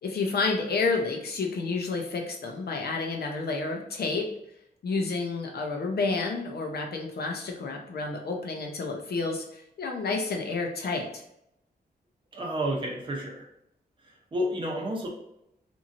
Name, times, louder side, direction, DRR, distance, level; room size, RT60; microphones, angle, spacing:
voice 1, 0.0-4.2 4.8-11.2, left 3 dB, 70° left, 2 dB, 0.6 m, -30 dB
voice 2, 12.3-13.5 14.0-15.1, equal, 30° right, -2 dB, 0.6 m, -31 dB
3.0 x 2.6 x 2.5 m, 0.78 s
wide cardioid pair, 155°, 17 cm